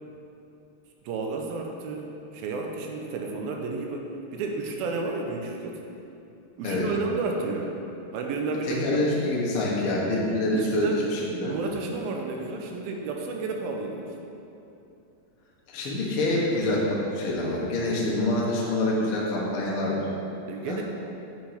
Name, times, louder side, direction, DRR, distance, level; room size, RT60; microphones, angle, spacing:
voice 1, 1.1-4.1 4.3-5.8 6.6-7.7 8.1-9.3 10.5-11.0 11.4-14.1 20.5-20.8, right 3 dB, 75° right, 1 dB, 2.5 m, -31 dB
voice 2, 8.7-11.5 15.7-20.0 20.7-20.8, left 1 dB, 65° left, -5 dB, 1.4 m, -26 dB
9.0 x 5.1 x 5.1 m, 2.8 s
omnidirectional pair, 4.6 m